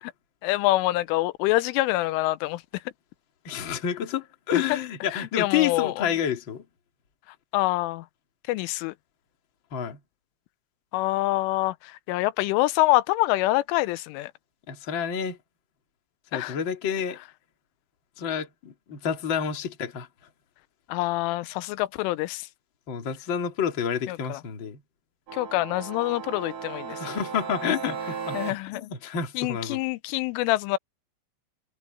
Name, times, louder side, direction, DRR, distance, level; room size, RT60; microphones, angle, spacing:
voice 1, 0.4-2.6 4.7-4.8 5.1-6.0 7.5-8.0 8.5-8.9 10.9-14.3 16.3-16.6 20.9-22.5 24.1-24.4 25.3-27.0 28.3-28.9 29.4-30.8, left 18 dB, 85° left, 3.2 m, -26 dB
voice 2, 3.4-6.6 9.7-10.0 14.7-15.4 16.3-17.2 18.2-20.1 22.9-24.8 26.9-29.8, left 8 dB, 35° left, 2.1 m, -29 dB
sound 1, 25.3-28.5, right 6 dB, 45° right, 4.5 m, -36 dB
omnidirectional pair, 5.6 m